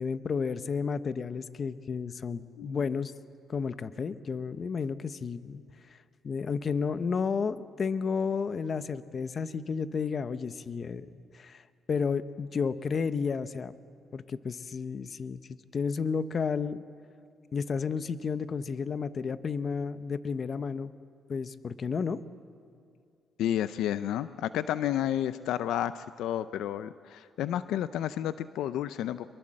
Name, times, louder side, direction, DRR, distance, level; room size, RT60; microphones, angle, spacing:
voice 1, 0.0-3.1 3.5-5.6 6.2-11.6 11.9-13.7 14.1-16.8 17.5-20.9 21.3-22.2, left 5 dB, 45° left, 13 dB, 0.8 m, -32 dB
voice 2, 2.6-2.9 23.4-29.3, left 11 dB, 85° left, 14 dB, 0.5 m, -31 dB
24.5 x 22.5 x 7.6 m, 2.4 s
cardioid pair, 90°, 0 cm